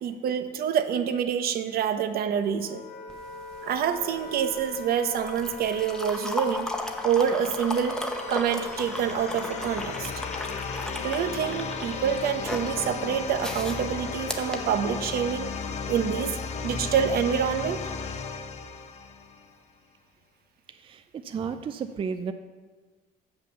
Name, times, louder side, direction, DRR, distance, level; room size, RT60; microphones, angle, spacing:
voice 1, 0.0-2.8 3.6-6.7 7.0-8.0 8.3-10.1 11.0-15.5 15.9-16.4 16.6-17.8, right 8 dB, 65° right, 9 dB, 0.8 m, -27 dB
Wind instrument woodwind instrument, 2.4-15.0, left 5 dB, 80° left, 1.8 m, -41 dB
sound 1, 3.1-15.4 16.6-16.8, left 1 dB, 5° left, 0.9 m, -36 dB
sound 2, 5.7-19.6, left 5 dB, 40° left, 0.8 m, -36 dB
voice 2, 20.7-22.3, right 6 dB, 30° right, 9 dB, 0.4 m, -33 dB
7.0 x 5.7 x 6.9 m, 1.4 s
cardioid pair, 110°, 17 cm